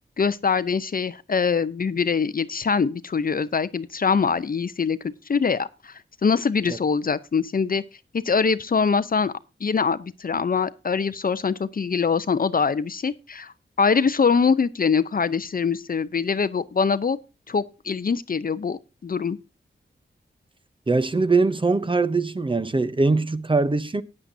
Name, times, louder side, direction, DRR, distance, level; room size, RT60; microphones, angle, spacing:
voice 1, 0.2-7.8 8.2-9.3 9.6-17.2 17.5-19.4, left 5 dB, 50° left, 0.6 m, -23 dB
voice 2, 20.9-24.0, right 3 dB, 25° right, 0.7 m, -22 dB
14.5 x 9.8 x 2.7 m
wide cardioid pair, 85°, 19 cm